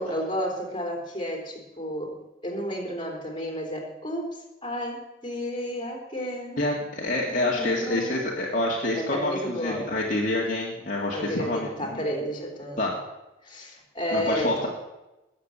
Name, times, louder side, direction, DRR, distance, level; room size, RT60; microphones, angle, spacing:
voice 1, 0.0-2.2 2.4-6.6 7.2-8.2 8.9-9.9 11.1-12.8 13.4-14.7, equal, 25° left, 2 dB, 3.7 m, -32 dB
voice 2, 6.6-12.0 12.8-12.9 14.1-14.7, left 1 dB, 40° left, -3 dB, 2.2 m, -27 dB
20.0 x 7.5 x 8.7 m, 1.0 s
head